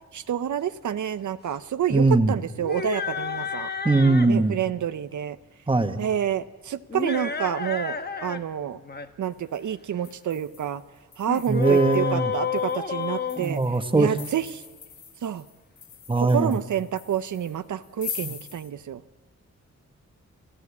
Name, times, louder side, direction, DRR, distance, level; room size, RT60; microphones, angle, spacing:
voice 1, 0.1-3.7 4.3-5.4 6.0-8.8 9.2-10.8 11.2-14.6 15.2-15.4 16.2-19.0, right 9 dB, 85° right, 11 dB, 0.7 m, -28 dB
voice 2, 1.9-2.3 3.8-4.5 5.7-6.0 11.5-12.3 13.4-14.1 16.1-16.5 18.2-18.3, right 3 dB, 15° right, 7 dB, 1.4 m, -20 dB
sound 1, 2.6-4.4 6.9-8.4 8.7-9.1 11.3-14.2, left 6 dB, 35° left, 1.1 m, -30 dB
sound 2, 9.3-9.6 10.0-18.7, left 7 dB, 80° left, 1.5 m, -42 dB
28.5 x 14.5 x 8.5 m, 1.4 s
wide cardioid pair, 110°, 29 cm